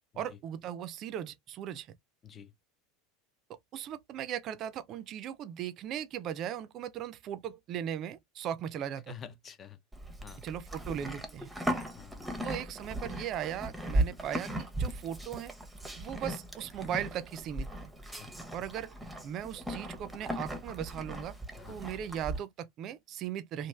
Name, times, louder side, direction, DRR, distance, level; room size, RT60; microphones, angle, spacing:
voice 1, 0.2-1.9 3.7-9.1 10.4-11.5 12.4-15.5 16.0-17.9 18.5-18.9 19.2-21.4 21.7-23.7, right 10 dB, 40° right, 0.5 m, -38 dB
voice 2, 9.1-9.8 10.2-10.4 11.9-12.3 18.2-18.3 21.6-21.8, left 8 dB, 30° left, 0.6 m, -48 dB
Livestock farm animals working animals, 9.9-22.4, right 1 dB, 5° right, 0.8 m, -37 dB
3.1 x 2.5 x 2.3 m
figure-of-eight pair, 80°, 0 cm